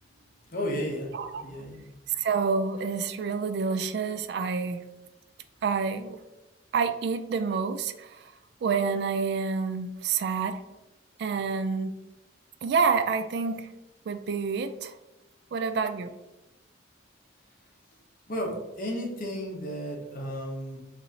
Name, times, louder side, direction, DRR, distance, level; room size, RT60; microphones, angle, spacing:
voice 1, 0.5-1.8 18.3-20.8, equal, 50° left, 0 dB, 1.0 m, -33 dB
voice 2, 2.1-4.8 5.6-6.2 6.7-8.2 8.6-10.6 11.2-12.0 12.6-13.7 14.1-14.9 15.5-16.1, right 5 dB, 60° right, 10 dB, 0.3 m, -28 dB
4.5 x 2.7 x 4.0 m, 1.0 s
head